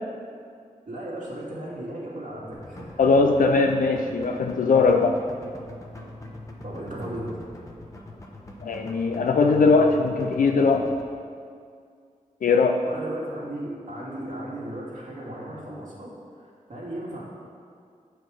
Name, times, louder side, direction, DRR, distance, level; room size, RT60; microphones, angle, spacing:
voice 1, 0.9-3.1 6.6-7.4 12.8-17.2, right 1 dB, 70° right, -6 dB, 2.3 m, -36 dB
sound 1, 2.5-11.0, left 1 dB, 25° left, 1.0 m, -42 dB
voice 2, 3.0-5.2 8.6-10.9 12.4-12.8, left 4 dB, 85° left, 3 dB, 0.5 m, -20 dB
8.5 x 4.8 x 6.3 m, 2.2 s
wide cardioid pair, 90°, 14 cm